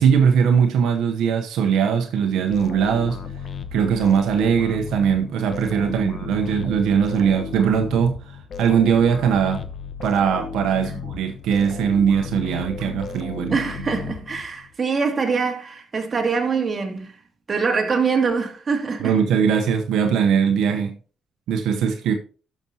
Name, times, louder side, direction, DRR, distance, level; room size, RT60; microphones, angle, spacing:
voice 1, 0.0-3.2 3.7-9.7 10.0-13.6 19.0-20.9 21.5-22.1, right 7 dB, 85° right, 0.9 m, -20 dB
sound 1, 2.5-14.7, left 6 dB, 50° left, 1.0 m, -34 dB
voice 2, 5.8-6.2 10.8-10.9 13.5-17.2 17.5-19.1, right 5 dB, 35° right, 2.3 m, -24 dB
12.5 x 6.1 x 2.8 m
cardioid pair, 90°, 0 cm